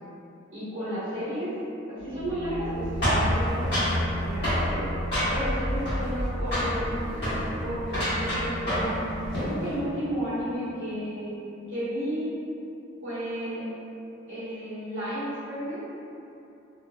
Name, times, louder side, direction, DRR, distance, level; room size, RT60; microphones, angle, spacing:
voice 1, 0.5-1.6 1.9-4.9 5.3-9.0 9.4-12.4 13.0-13.7 14.3-15.8, equal, 85° right, -12 dB, 1.1 m, -33 dB
sound 1, 2.0-10.5, equal, 50° right, 1.1 m, -33 dB
sound 2, 3.0-4.0 4.4-4.6 5.1-5.6 5.8-6.3 6.5-6.8 7.1-7.4 7.9-9.0 9.2-9.5, equal, 55° left, 1.4 m, -27 dB
3.1 x 2.4 x 2.2 m, 2.8 s
head